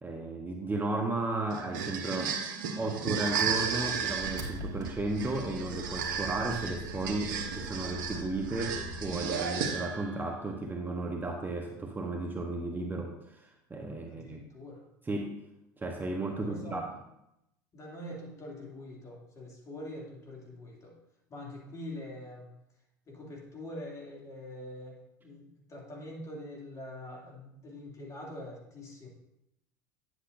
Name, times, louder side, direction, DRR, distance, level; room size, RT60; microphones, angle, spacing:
voice 1, 0.0-2.4 2.8-14.4 15.1-15.3 15.8-16.9, right 2 dB, 20° right, 2 dB, 0.9 m, -34 dB
sound 1, 1.5-10.1, right 6 dB, 70° right, 1.1 m, -34 dB
Engine, 3.2-9.5, equal, 35° right, 1.9 m, -42 dB
voice 2, 14.1-14.9 16.4-16.8 17.7-20.9 21.3-22.5 23.1-29.1, left 1 dB, 30° left, -1 dB, 2.5 m, -44 dB
9.7 x 8.1 x 2.6 m, 0.85 s
hypercardioid pair, 90°, 11 cm